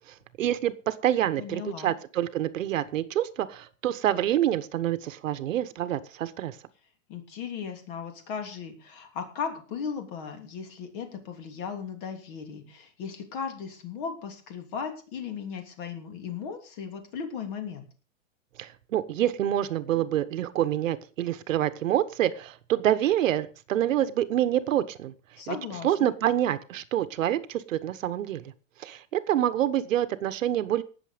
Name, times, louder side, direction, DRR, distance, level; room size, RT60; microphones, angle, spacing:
voice 1, 0.4-6.6 18.6-25.1 25.5-25.6 25.8-28.4 28.8-30.8, right 12 dB, 75° right, 13 dB, 1.3 m, -27 dB
voice 2, 1.4-1.9 7.1-17.8 25.4-26.1, left 6 dB, 40° left, 6 dB, 3.1 m, -36 dB
18.5 x 7.1 x 5.1 m, 0.38 s
supercardioid pair, 160°, 39 cm